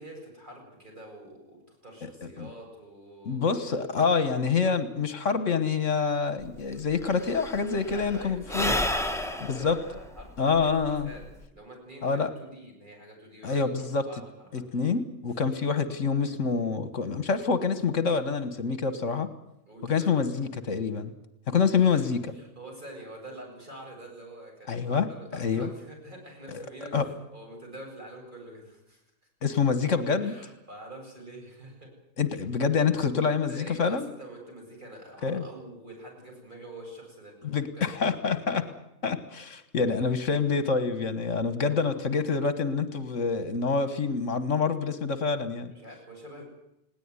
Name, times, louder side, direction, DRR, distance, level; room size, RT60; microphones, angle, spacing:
voice 1, 0.0-3.6 4.2-4.3 7.8-10.6 11.0-11.2 11.5-13.7 14.1-14.9 19.7-20.2 21.7-22.1 22.3-29.0 30.2-31.9 33.5-37.3 37.7-38.2 38.5-38.7 39.8-40.1 41.8-41.9 45.7-46.4, right 1 dB, 35° right, 0 dB, 7.9 m, -46 dB
voice 2, 2.0-2.5 3.2-8.7 9.5-9.8 10.4-11.1 12.0-12.3 13.4-14.0 14.5-19.3 19.8-21.1 21.5-22.3 24.7-25.7 26.5-26.6 26.9-27.1 29.4-30.3 32.2-34.1 35.2-35.5 37.4-38.6 39.0-45.7, left 5 dB, 70° left, 11 dB, 1.7 m, -26 dB
Sigh / Breathing, 6.4-6.5 6.7-11.5, left 1 dB, ahead, 1.3 m, -32 dB
20.0 x 18.0 x 9.6 m, 0.87 s
omnidirectional pair, 1.3 m